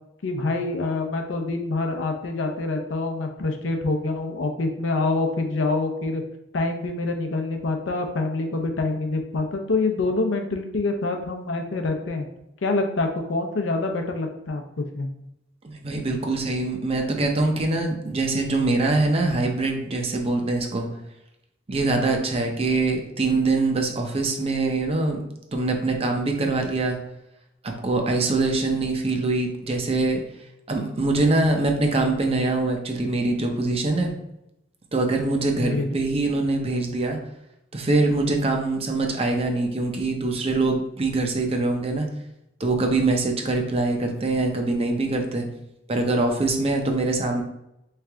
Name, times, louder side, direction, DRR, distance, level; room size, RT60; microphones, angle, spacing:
voice 1, 0.2-6.2 6.5-12.3 12.6-15.1 35.6-36.0, left 3 dB, 80° left, 4 dB, 0.6 m, -26 dB
voice 2, 15.6-20.9 21.7-25.2 25.5-27.0 27.6-30.2 30.7-34.1 34.9-37.2 37.7-42.1 42.6-45.5 45.9-47.4, right 2 dB, 30° right, 3 dB, 0.6 m, -23 dB
3.7 x 3.3 x 3.4 m, 0.83 s
head